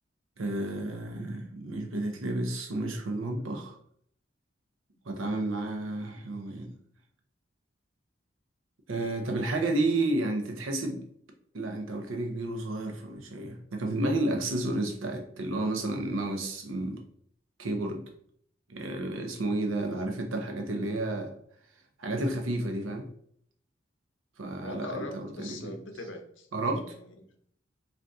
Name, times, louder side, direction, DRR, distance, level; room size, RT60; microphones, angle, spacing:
voice 1, 0.4-3.8 5.1-6.7 8.9-11.0 11.5-17.0 17.6-18.0 18.7-21.3 22.0-23.1 24.4-25.7 26.5-26.9, right 2 dB, 90° right, 0.6 m, -31 dB
voice 2, 24.6-26.5 26.9-27.2, left 2 dB, 75° left, 0.6 m, -40 dB
2.6 x 2.5 x 3.4 m
head